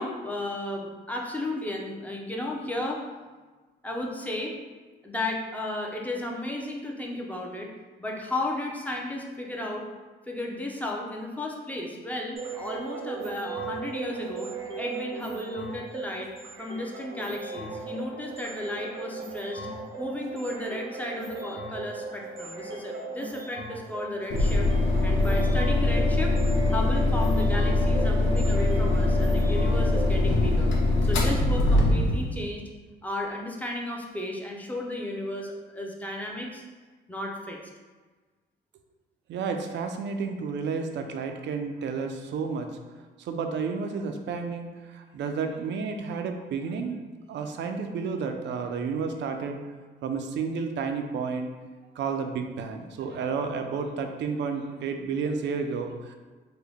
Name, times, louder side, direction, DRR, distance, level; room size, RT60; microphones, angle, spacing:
voice 1, 0.0-3.0 3.8-4.5 5.0-7.7 8.0-9.9 10.3-14.5 14.8-16.3 16.6-19.7 20.0-24.7 25.0-26.3 26.7-30.7 31.0-32.6 33.0-36.6 37.1-37.6, left 1 dB, 10° left, -1 dB, 0.5 m, -34 dB
sound 1, 12.3-30.1, right 3 dB, 90° right, 1.0 m, -37 dB
sound 2, 24.3-32.3, left 2 dB, 70° left, 0.7 m, -23 dB
voice 2, 39.3-42.8 43.2-47.0 47.3-49.6 50.0-51.5 52.0-56.2, right 5 dB, 65° right, 6 dB, 0.4 m, -31 dB
3.7 x 2.2 x 3.4 m, 1.3 s
cardioid pair, 90°, 20 cm